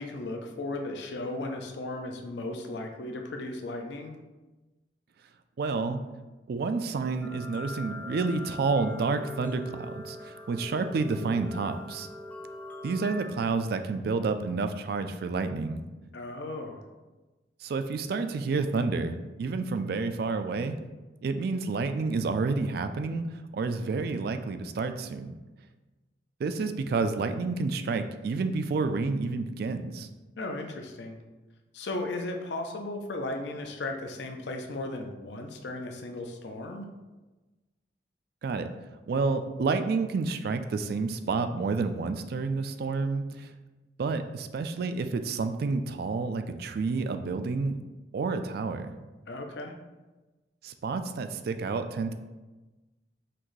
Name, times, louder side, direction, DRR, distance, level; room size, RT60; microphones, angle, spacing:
voice 1, 0.0-4.1 16.1-16.8 30.4-31.2 31.7-36.9 49.3-49.7, left 2 dB, 70° left, 4 dB, 0.5 m, -36 dB
voice 2, 5.6-6.0 6.5-12.1 12.8-15.8 17.6-20.8 21.2-23.2 23.5-25.3 26.4-30.1 38.4-38.7 39.1-43.5 44.0-47.8 48.1-48.9 50.6-52.1, right 4 dB, 55° right, 8 dB, 0.3 m, -29 dB
sound 1, 7.2-13.3, left 1 dB, 10° left, 0.4 m, -42 dB
5.8 x 2.6 x 3.1 m, 1.2 s
head